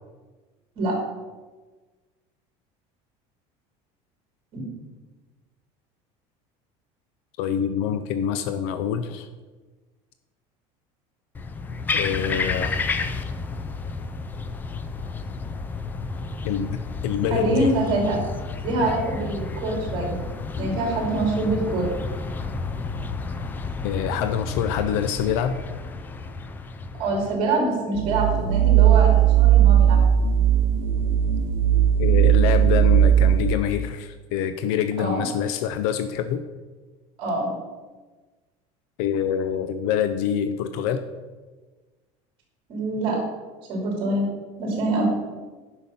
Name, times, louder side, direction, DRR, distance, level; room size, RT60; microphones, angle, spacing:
voice 1, 7.4-9.3 11.9-12.8 16.4-17.7 18.8-18.9 23.8-25.6 32.0-36.4 39.0-41.0, left 8 dB, 70° left, 10 dB, 0.6 m, -26 dB
sound 1, 11.3-27.4, left 4 dB, 15° left, 0.4 m, -31 dB
voice 2, 17.3-18.2 18.6-20.2 20.5-21.9 27.0-30.2 35.0-35.3 37.2-37.5 42.7-43.2 43.7-44.3 44.6-45.0, right 2 dB, 40° right, -2 dB, 3.1 m, -25 dB
sound 2, 28.0-33.5, right 10 dB, 70° right, 0.6 m, -17 dB
9.8 x 5.9 x 5.4 m, 1.3 s
cardioid pair, 175°, 14 cm